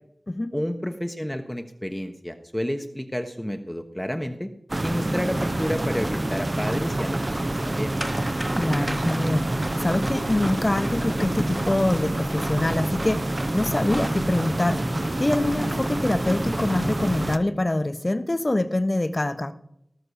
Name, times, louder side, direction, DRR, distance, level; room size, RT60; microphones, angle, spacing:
voice 1, 0.5-4.5 4.8-7.9, equal, 10° left, 6 dB, 1.1 m, -30 dB
sound 1, 4.7-17.4, right 1 dB, 40° right, 0.9 m, -27 dB
sound 2, 8.0-14.5, right 1 dB, 20° right, 1.5 m, -37 dB
voice 2, 8.5-19.5, left 1 dB, 35° left, 11 dB, 1.1 m, -25 dB
18.5 x 6.4 x 6.5 m, 0.74 s
wide cardioid pair, 50°, 0 cm